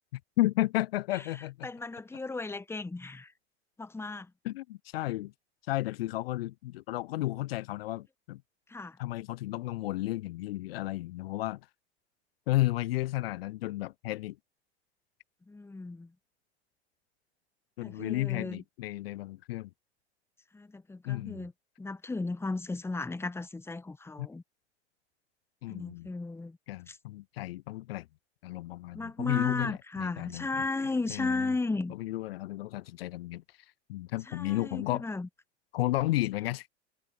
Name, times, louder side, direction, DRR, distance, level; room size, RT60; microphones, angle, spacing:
voice 1, 0.4-1.7 4.4-5.3 5.7-8.4 9.0-11.6 12.5-14.4 17.8-19.7 21.0-21.5 24.2-24.3 25.6-26.1 26.7-28.1 28.4-30.5 31.1-31.5 32.0-33.4 33.9-35.0 35.7-36.7, left 17 dB, 60° left, 0.7 m, -32 dB
voice 2, 1.6-3.3 3.8-4.3 8.7-9.0 15.5-16.1 17.8-18.6 20.5-21.5 21.8-24.4 25.7-26.6 26.9-27.0 28.9-31.9 34.3-35.3, left 3 dB, 5° left, 1.2 m, -35 dB
figure-of-eight pair, 85°, 34 cm